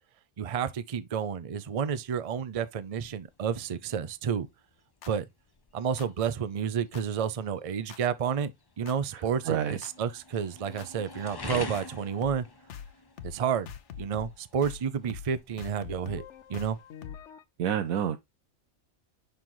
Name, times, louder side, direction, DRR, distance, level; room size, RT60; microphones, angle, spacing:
voice 1, 0.4-4.5 5.1-5.2 5.7-8.5 8.8-12.5 13.2-13.7 14.0-16.2 16.5-16.8, right 7 dB, 50° right, 0.4 m, -30 dB
sound 1, 1.6-17.1, left 3 dB, 30° left, 0.5 m, -47 dB
sound 2, 5.0-5.1 6.0-6.1 6.9-7.0 7.9-8.0 8.9-9.0 9.8-9.9 10.8-10.9 11.7-11.8 12.2-12.4 12.7-12.9 13.2-13.4 13.7-14.4 14.6-14.8 15.1-15.3 15.6-17.4, left 8 dB, 60° left, 1.0 m, -43 dB
voice 2, 9.1-9.8 17.6-18.2, right 9 dB, 80° right, 1.1 m, -29 dB
6.7 x 5.7 x 3.1 m
omnidirectional pair, 1.5 m